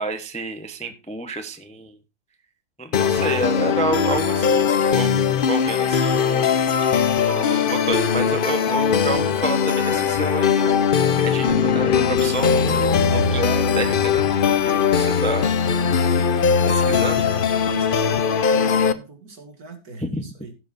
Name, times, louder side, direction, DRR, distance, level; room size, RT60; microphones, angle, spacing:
voice 1, 0.0-1.9 2.8-5.2 5.5-6.5 7.2-10.9 11.2-12.8 13.1-15.5 16.7-17.2 20.0-20.3, right 2 dB, 5° left, 8 dB, 0.5 m, -29 dB
sound 1, 2.9-18.9, left 6 dB, 65° left, 0.5 m, -20 dB
Bass guitar, 11.5-15.2, left 4 dB, 25° right, 3.4 m, -31 dB
voice 2, 16.6-20.5, right 3 dB, 60° right, 4 dB, 2.6 m, -41 dB
16.5 x 7.6 x 2.6 m, 0.28 s
omnidirectional pair, 1.8 m